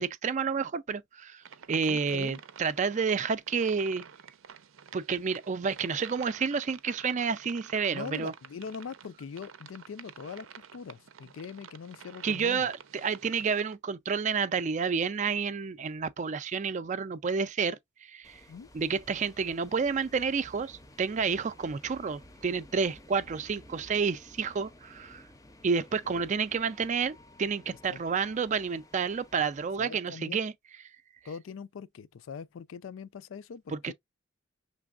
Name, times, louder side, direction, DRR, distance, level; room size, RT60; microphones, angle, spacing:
voice 1, 0.0-1.4 1.7-4.0 4.9-8.3 12.2-17.8 18.1-18.4 18.7-25.2 25.6-30.5 33.7-33.9, right 5 dB, 40° right, 0.4 m, -30 dB
sound 1, 1.4-13.8, right 7 dB, 85° right, 0.6 m, -50 dB
voice 2, 1.9-2.4 7.9-10.5 10.7-12.7 18.5-18.7 26.0-26.2 27.9-28.0 29.8-30.4 31.2-33.9, left 6 dB, 75° left, 0.4 m, -42 dB
sound 2, 18.2-29.8, left 1 dB, 15° left, 0.6 m, -54 dB
6.0 x 3.3 x 2.3 m
head